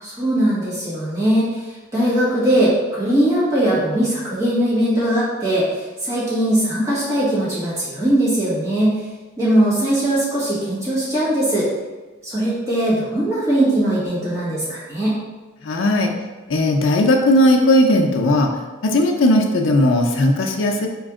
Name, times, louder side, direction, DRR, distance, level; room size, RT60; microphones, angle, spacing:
voice 1, 0.0-1.4 1.9-9.0 9.4-11.7 12.2-15.2, right 1 dB, 15° right, -10 dB, 1.4 m, -20 dB
voice 2, 15.6-16.1 16.5-18.5 18.8-20.9, left 1 dB, 85° left, 2 dB, 0.5 m, -16 dB
4.3 x 3.0 x 3.6 m, 1.2 s
head